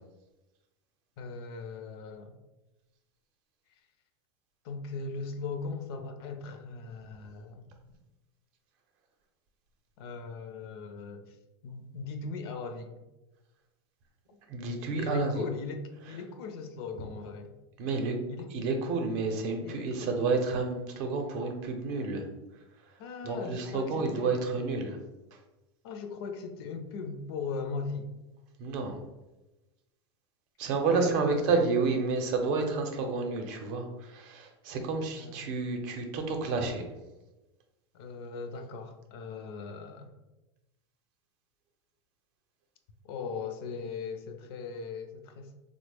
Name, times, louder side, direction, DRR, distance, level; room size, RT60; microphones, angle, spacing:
voice 1, 1.2-2.3 4.6-7.7 10.0-11.4 11.6-12.9 14.9-17.5 18.3-18.5 19.6-20.1 23.0-24.4 25.8-28.1 30.9-31.5 35.2-35.5 37.9-40.1 43.0-45.5, left 4 dB, 65° left, 6 dB, 0.5 m, -39 dB
voice 2, 14.5-15.5 17.8-18.2 18.5-22.2 23.2-25.0 28.6-29.0 30.6-36.8, right 4 dB, 50° right, 4 dB, 0.6 m, -30 dB
3.4 x 2.0 x 3.3 m, 1.0 s
supercardioid pair, 130°, 14 cm